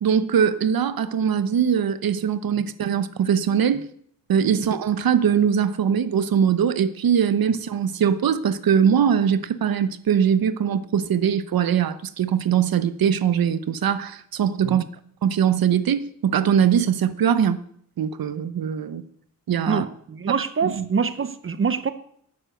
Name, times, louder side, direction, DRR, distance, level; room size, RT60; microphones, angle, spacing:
voice 1, 0.0-3.8 4.3-14.8 15.2-17.6 18.0-19.0 19.5-19.8 20.6-20.9, right 8 dB, 80° right, 0.9 m, -21 dB
voice 2, 19.7-21.9, right 5 dB, 35° right, 0.6 m, -25 dB
11.5 x 9.8 x 6.4 m
wide cardioid pair, 165°, 35 cm